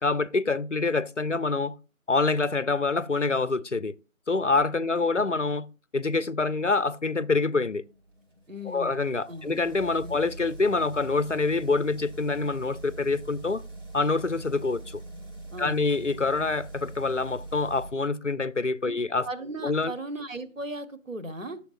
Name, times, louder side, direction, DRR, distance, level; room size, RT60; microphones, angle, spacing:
voice 1, 0.0-1.8 2.1-3.9 4.3-5.7 5.9-7.8 8.7-13.6 13.9-15.0 15.6-19.3 19.6-19.9, left 3 dB, 60° left, 0.5 m, -26 dB
voice 2, 4.8-5.3 8.5-9.6 10.0-10.2 15.5-15.9 18.8-18.9 19.2-21.6, right 1 dB, 65° right, 1.1 m, -38 dB
sound 1, 7.7-17.9, right 2 dB, 45° right, 5.3 m, -43 dB
11.5 x 7.0 x 2.5 m
figure-of-eight pair, 180°, 42 cm